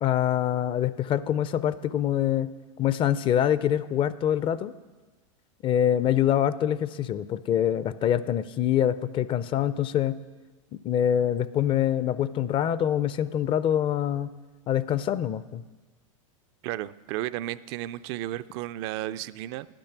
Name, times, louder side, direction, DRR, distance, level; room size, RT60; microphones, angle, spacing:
voice 1, 0.0-2.5 2.8-4.7 5.6-10.2 10.8-14.3 14.7-15.6, left 10 dB, 30° left, 16 dB, 0.4 m, -25 dB
voice 2, 16.6-19.7, right 14 dB, 50° right, 14 dB, 0.4 m, -33 dB
10.0 x 9.0 x 5.9 m, 1.3 s
hypercardioid pair, 105°, 17 cm